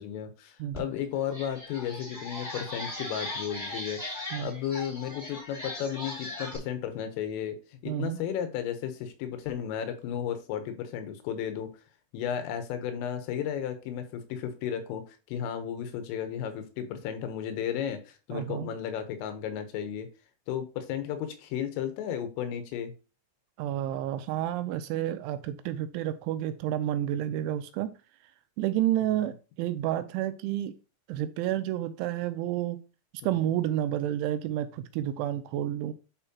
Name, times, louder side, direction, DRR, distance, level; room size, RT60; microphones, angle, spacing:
voice 1, 0.0-4.0 4.4-7.6 7.8-11.7 12.1-20.1 20.5-22.9 29.0-29.3 33.2-33.5, left 9 dB, 85° left, 8 dB, 3.7 m, -34 dB
sound 1, 0.7-0.8 1.2-6.6, left 2 dB, 10° left, 2.4 m, -39 dB
voice 2, 7.9-8.2 18.3-18.7 23.6-27.9 28.6-30.7 31.1-32.8 33.2-35.9, right 12 dB, 80° right, 10 dB, 2.9 m, -30 dB
11.0 x 4.5 x 2.9 m, 0.32 s
omnidirectional pair, 5.7 m